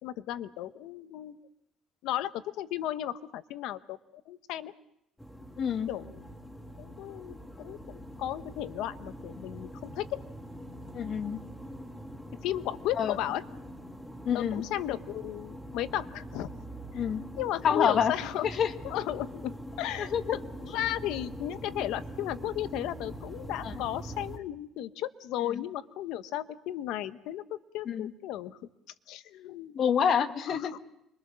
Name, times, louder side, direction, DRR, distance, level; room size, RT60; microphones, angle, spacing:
voice 1, 0.0-1.4 2.0-4.0 4.3-4.7 5.9-6.0 6.8-10.2 12.4-13.4 14.3-16.5 17.4-18.5 18.8-19.5 19.8-28.6 29.1-29.8 30.5-30.8, left 13 dB, 70° left, 13 dB, 1.0 m, -35 dB
sound 1, 5.2-24.4, equal, 5° left, 1.7 m, -43 dB
voice 2, 5.6-5.9 10.9-11.4 13.0-13.2 14.2-14.6 16.9-17.2 17.6-18.1 18.4-18.7 20.0-20.2 23.6-23.8 25.5-25.6 27.8-28.1 29.7-30.7, left 7 dB, 40° left, 9 dB, 1.3 m, -27 dB
26.5 x 23.0 x 6.3 m, 0.83 s
cardioid pair, 160°, 0 cm